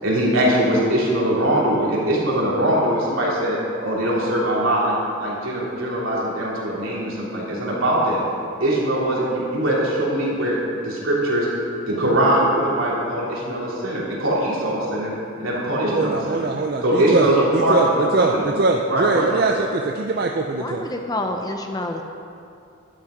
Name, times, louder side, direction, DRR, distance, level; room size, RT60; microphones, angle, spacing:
voice 1, 0.0-8.2 8.6-10.6 10.8-11.5 11.9-15.1 15.4-16.5 16.8-18.5 18.9-19.5, right 1 dB, 80° right, -5 dB, 3.1 m, -21 dB
voice 2, 15.9-20.9, right 3 dB, 50° right, 2 dB, 0.5 m, -22 dB
voice 3, 20.6-22.0, left 1 dB, 20° left, 4 dB, 0.6 m, -28 dB
11.5 x 8.7 x 5.1 m, 2.5 s
head